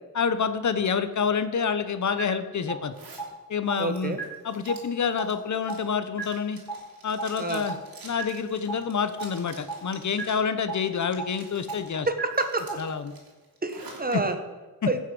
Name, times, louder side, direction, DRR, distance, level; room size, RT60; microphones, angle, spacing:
voice 1, 0.1-2.9 3.5-4.2 4.4-6.6 7.0-7.8 8.0-12.1 12.8-13.1 14.1-14.2, left 6 dB, 55° left, 11 dB, 0.8 m, -27 dB
sound 1, 2.2-2.3 2.7-2.8 3.2-3.3 3.7-3.8 4.2-4.3 4.7-4.8 5.2-5.3 5.7-5.8 6.2-6.3 6.7-6.8 7.2-7.3 7.7-7.8 8.2-8.3 8.7-8.8 9.2-9.3 9.7-9.8 10.2-10.3 10.7-10.8 11.2-11.3 11.7-11.8 12.2-12.3 12.7-12.8, right 4 dB, 10° left, 3.8 m, -32 dB
Zipper (clothing), 2.9-3.3 3.7-10.5 10.8-11.9 12.3-14.1, right 3 dB, 85° right, 2.7 m, -49 dB
voice 2, 3.8-4.2 7.4-7.6 12.1-12.6 13.6-14.3 14.8-15.0, right 2 dB, 25° right, 7 dB, 1.1 m, -27 dB
15.5 x 6.4 x 5.3 m, 1.3 s
wide cardioid pair, 110°, 34 cm